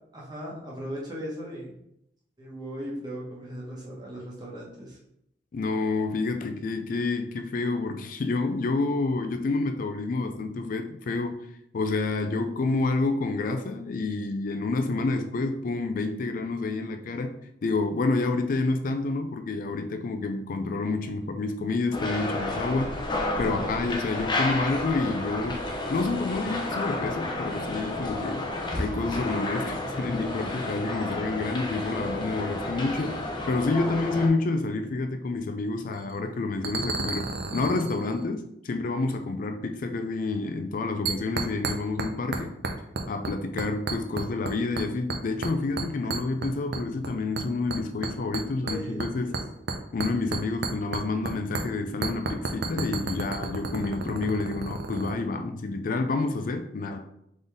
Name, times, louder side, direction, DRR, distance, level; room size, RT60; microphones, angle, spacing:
voice 1, 0.1-1.7 2.4-5.0 48.6-49.4 50.3-50.4, equal, 25° right, 1.3 m, -38 dB
voice 2, 5.5-11.5 11.7-23.0 23.4-28.5 28.7-42.5 43.1-49.4 49.9-57.1, left 3 dB, 50° left, 0.4 m, -29 dB
sound 1, 21.9-34.3, left 2 dB, 25° left, 0.7 m, -31 dB
sound 2, 35.9-36.2 36.6-38.2 41.0-42.1 42.3-43.3 43.6-44.5 44.8-45.5 45.8-47.1 47.4-51.3 51.5-51.6 52.0-55.1, right 3 dB, 65° right, 0.6 m, -31 dB
3.9 x 3.9 x 3.5 m
head